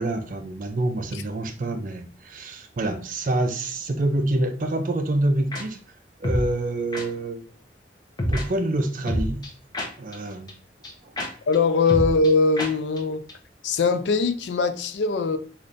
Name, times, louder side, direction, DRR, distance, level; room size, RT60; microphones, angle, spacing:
voice 1, 0.0-5.8 6.2-7.4 8.3-9.4 10.0-10.5 11.0-11.1, right 1 dB, 50° right, 0.5 m, -26 dB
sound 1, 5.5-5.6 6.2-6.5 6.9-7.0 8.2-8.4 9.1-10.1 10.5-10.6 10.8-10.9 11.2-11.3 11.5-11.6 11.9-12.3 12.6-12.7 13.0-13.1 13.3-13.4, equal, 25° left, 0.6 m, -26 dB
voice 2, 11.5-13.2 13.6-15.4, left 4 dB, 80° left, 0.4 m, -21 dB
3.2 x 2.5 x 3.8 m
head